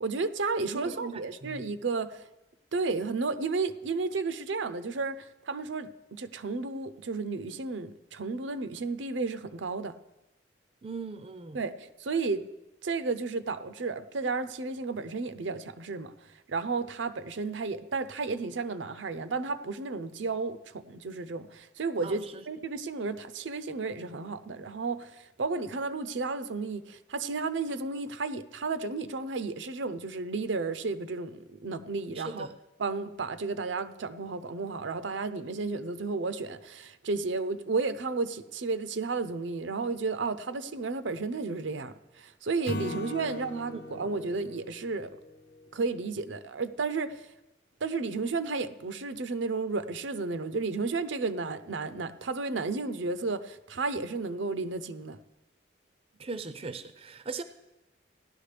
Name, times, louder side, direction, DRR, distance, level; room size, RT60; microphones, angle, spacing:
voice 1, 0.0-2.2 2.7-9.9 11.5-12.4 12.8-16.1 16.5-32.5 32.8-45.1 45.7-47.2 47.8-55.2, right 4 dB, 80° right, 0.6 m, -33 dB
voice 2, 0.6-1.7 10.8-11.6 22.0-22.5 32.1-32.5 43.7-44.0 56.2-57.4, right 4 dB, 30° right, 0.4 m, -40 dB
Acoustic guitar / Strum, 42.7-46.0, left 2 dB, 55° left, 0.9 m, -40 dB
17.0 x 11.0 x 3.3 m
head